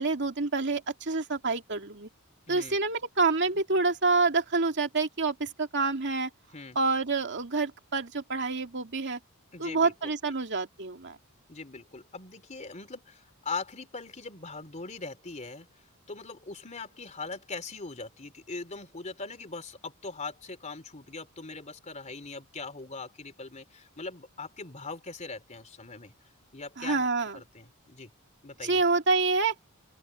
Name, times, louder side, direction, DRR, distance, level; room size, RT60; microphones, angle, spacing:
voice 1, 0.0-2.1 2.5-6.3 6.8-9.2 9.6-11.2 26.8-27.4 28.6-29.5, right 3 dB, 55° right, 2.5 m, -27 dB
voice 2, 9.5-10.1 11.5-15.7 16.1-26.1 26.5-27.1 27.3-28.1 28.4-28.8, left 3 dB, 35° left, 3.4 m, -41 dB
open air
head